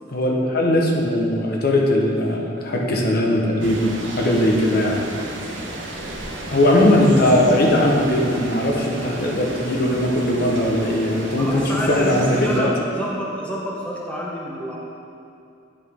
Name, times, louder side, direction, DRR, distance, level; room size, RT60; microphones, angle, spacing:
voice 1, 0.1-5.0 6.5-12.7, left 1 dB, 50° left, -1 dB, 0.9 m, -19 dB
sound 1, 3.6-12.6, right 1 dB, 65° right, 1.0 m, -33 dB
voice 2, 11.4-14.8, equal, 5° left, -5 dB, 0.8 m, -28 dB
9.6 x 5.3 x 3.5 m, 2.5 s
head